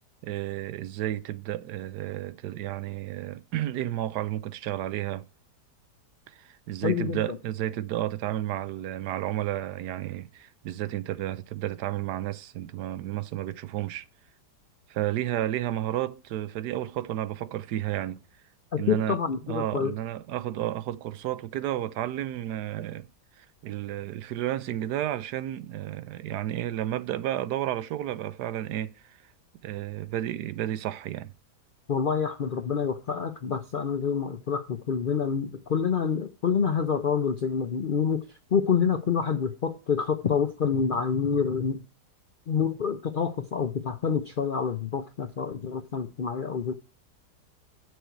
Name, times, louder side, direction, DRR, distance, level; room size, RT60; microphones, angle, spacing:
voice 1, 0.2-5.3 6.3-14.1 14.9-18.2 18.8-23.1 23.4-29.2 29.6-31.3, right 13 dB, 80° right, 1.2 m, -32 dB
voice 2, 6.8-7.2 18.7-19.9 31.9-38.2 38.5-41.8 42.5-46.7, left 6 dB, 60° left, 0.5 m, -27 dB
8.0 x 6.4 x 4.6 m
omnidirectional pair, 1.7 m